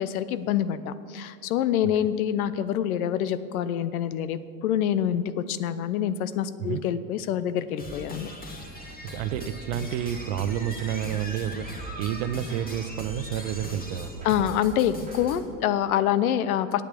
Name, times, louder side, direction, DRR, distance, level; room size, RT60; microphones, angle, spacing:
voice 1, 0.0-8.3 14.2-16.8, left 10 dB, 75° left, 14 dB, 0.8 m, -26 dB
sound 1, 7.8-15.5, left 1 dB, 20° left, 2.2 m, -40 dB
voice 2, 9.0-14.5, right 10 dB, 60° right, 12 dB, 0.9 m, -30 dB
sound 2, 9.3-15.4, equal, 15° right, 1.9 m, -45 dB
9.1 x 8.6 x 8.4 m, 2.1 s
hypercardioid pair, 90°, 43 cm